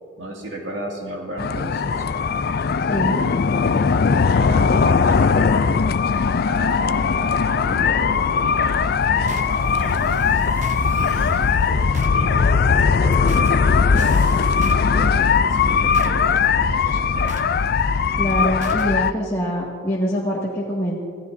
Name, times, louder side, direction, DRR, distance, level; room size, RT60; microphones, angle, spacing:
voice 1, 0.2-2.2 3.7-5.6 6.5-10.3 10.7-14.3 14.6-17.4, right 1 dB, 70° right, -1 dB, 2.2 m, -35 dB
sound 1, 1.4-19.1, left 5 dB, 45° left, 0.4 m, -19 dB
voice 2, 2.9-3.2 18.2-21.0, equal, 15° left, -7 dB, 2.0 m, -24 dB
sound 2, 8.6-18.9, right 2 dB, 35° right, 0.9 m, -37 dB
26.5 x 16.0 x 2.7 m, 2.3 s
head